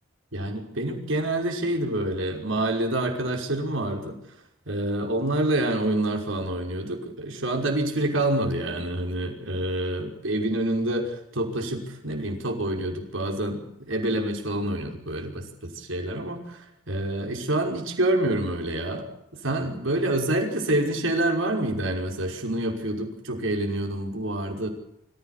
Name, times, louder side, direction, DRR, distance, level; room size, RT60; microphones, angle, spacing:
voice 1, 0.3-4.2 4.7-19.1 19.3-24.7, right 1 dB, 75° right, 2 dB, 5.6 m, -27 dB
25.5 x 16.0 x 8.3 m, 0.81 s
head